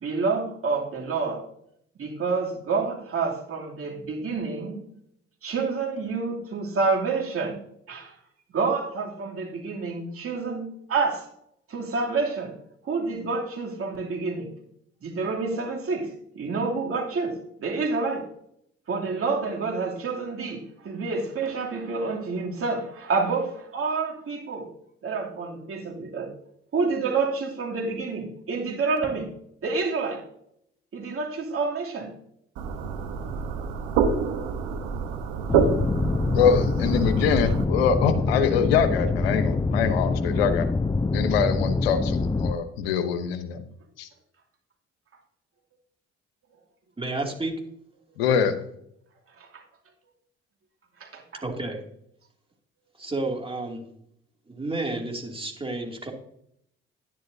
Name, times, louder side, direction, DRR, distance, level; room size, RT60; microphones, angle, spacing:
voice 1, 0.0-1.4 2.0-4.8 5.4-7.6 7.9-8.1 8.5-11.3 11.7-12.5 12.8-14.5 15.0-18.3 18.9-24.7 25.0-26.3 26.7-29.3 29.6-30.2 30.9-32.1 51.0-51.2, right 4 dB, 50° right, -1 dB, 2.8 m, -28 dB
sound 1, 32.6-37.6, right 5 dB, 80° right, 1.0 m, -27 dB
sound 2, 35.5-42.5, left 3 dB, 15° left, 0.6 m, -25 dB
voice 2, 36.3-40.7 41.1-43.6 44.0-44.1 48.2-48.5, left 7 dB, 85° left, 9 dB, 1.0 m, -24 dB
voice 3, 47.0-47.5 51.4-51.8 53.0-53.8 54.5-56.1, right 2 dB, 20° right, 2 dB, 2.7 m, -31 dB
10.5 x 10.5 x 2.7 m, 0.71 s
hypercardioid pair, 50°, 30 cm